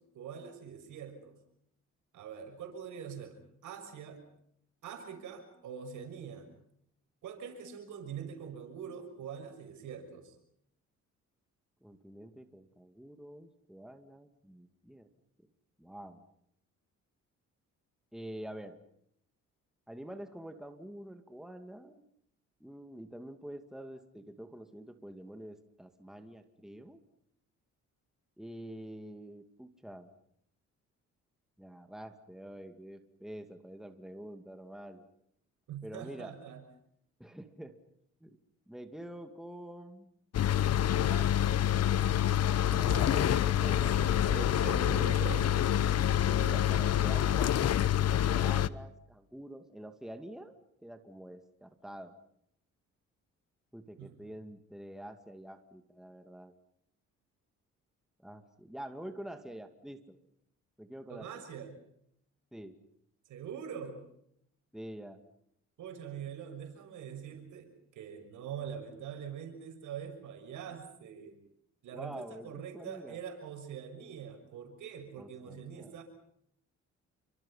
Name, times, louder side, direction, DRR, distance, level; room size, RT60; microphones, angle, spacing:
voice 1, 0.1-1.4 2.1-4.2 4.8-6.5 7.2-10.3 35.7-36.6 42.7-43.4 44.0-45.5 54.0-54.4 61.1-61.8 63.2-64.1 65.8-71.4 71.8-76.0, right 7 dB, 80° right, 5 dB, 6.6 m, -44 dB
voice 2, 11.8-15.1 15.8-16.2 18.1-18.8 19.9-22.0 22.6-27.0 28.4-30.1 31.6-35.1 35.8-36.4 37.2-37.8 38.2-38.4 38.7-40.1 41.0-41.6 42.7-45.0 46.1-47.6 48.2-52.1 53.7-56.5 58.2-60.2 60.8-61.3 62.5-62.7 64.7-65.2 71.9-73.2 75.2-75.9, right 1 dB, ahead, 7 dB, 2.4 m, -47 dB
sound 1, 40.3-48.7, left 10 dB, 55° left, 0.9 m, -27 dB
29.0 x 25.0 x 5.7 m, 0.72 s
cardioid pair, 90°, 30 cm